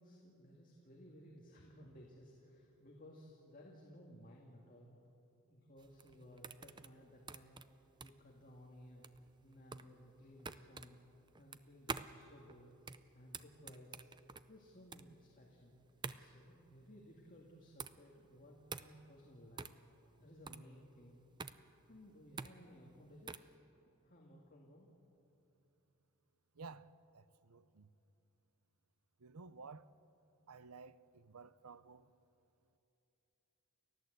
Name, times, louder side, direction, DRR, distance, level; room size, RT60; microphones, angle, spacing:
voice 1, 0.0-5.0 5.5-9.1 9.4-11.0 11.4-12.7 13.1-14.1 14.5-15.7 16.1-19.7 20.2-21.2 21.9-23.5 24.0-24.9, equal, 35° left, 2.2 m, -58 dB
sound 1, 5.8-23.6, right 5 dB, 20° right, 0.5 m, -49 dB
voice 2, 26.6-26.9 27.1-27.9 29.2-29.9 30.5-32.1, right 4 dB, 80° right, 0.7 m, -54 dB
30.0 x 14.0 x 8.1 m
head